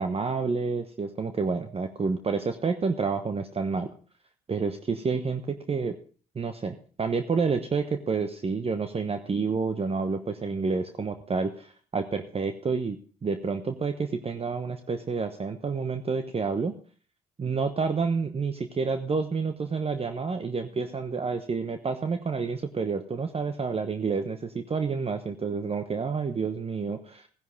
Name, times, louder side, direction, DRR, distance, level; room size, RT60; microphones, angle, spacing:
voice 1, 0.0-3.9 4.5-5.9 6.3-16.7 17.4-27.3, right 4 dB, 30° right, 8 dB, 1.1 m, -29 dB
16.0 x 10.5 x 3.4 m, 0.40 s
hypercardioid pair, 55°, 21 cm